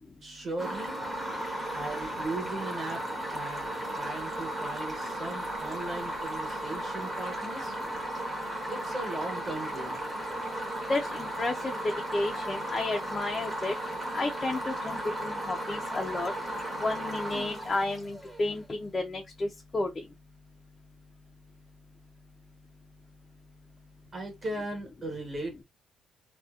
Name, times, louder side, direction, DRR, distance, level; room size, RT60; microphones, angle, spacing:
voice 1, 0.2-1.0 1.7-3.0 3.3-7.7 8.7-10.0 24.1-25.6, right 2 dB, 35° right, 1.1 m, -37 dB
sound 1, 0.6-18.6, right 1 dB, 15° right, 0.8 m, -35 dB
voice 2, 1.2-2.1 10.9-13.7 14.1-16.3 16.8-20.0, left 2 dB, 20° left, 0.3 m, -32 dB
2.7 x 2.1 x 2.3 m
cardioid pair, 160°, 0 cm